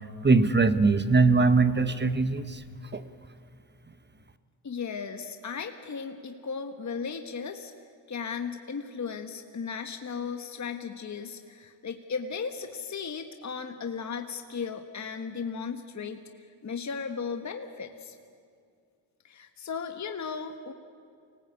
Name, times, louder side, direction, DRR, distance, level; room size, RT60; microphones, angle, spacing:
voice 1, 0.2-2.6 2.9-3.0, right 3 dB, 20° right, 11 dB, 1.3 m, -21 dB
voice 2, 4.6-7.7 8.1-18.2 19.2-20.7, left 6 dB, 35° left, 6 dB, 1.5 m, -36 dB
24.5 x 19.0 x 8.4 m, 2.3 s
cardioid pair, 70°, 47 cm